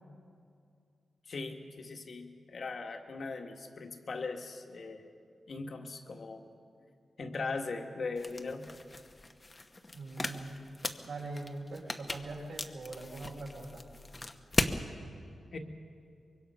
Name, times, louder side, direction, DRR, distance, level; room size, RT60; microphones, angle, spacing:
voice 1, 1.3-5.1 5.5-6.4 7.2-8.6 15.5-15.6, left 3 dB, 55° left, 4 dB, 1.8 m, -39 dB
sound 1, 8.2-14.8, left 2 dB, 25° left, 1.0 m, -38 dB
voice 2, 9.9-10.6 11.0-13.8, right 2 dB, 70° right, -1 dB, 5.2 m, -42 dB
24.5 x 23.0 x 5.7 m, 2.3 s
wide cardioid pair, 130°, 0 cm